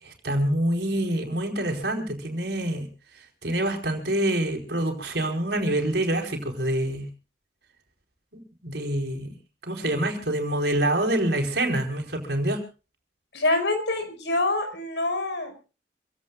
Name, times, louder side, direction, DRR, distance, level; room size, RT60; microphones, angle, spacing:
voice 1, 0.0-2.9 3.1-7.1 8.3-9.3 9.6-12.6, right 1 dB, 70° right, 3 dB, 4.8 m, -26 dB
voice 2, 13.3-15.5, left 2 dB, 75° left, 7 dB, 5.3 m, -25 dB
27.0 x 17.0 x 2.4 m, 0.34 s
head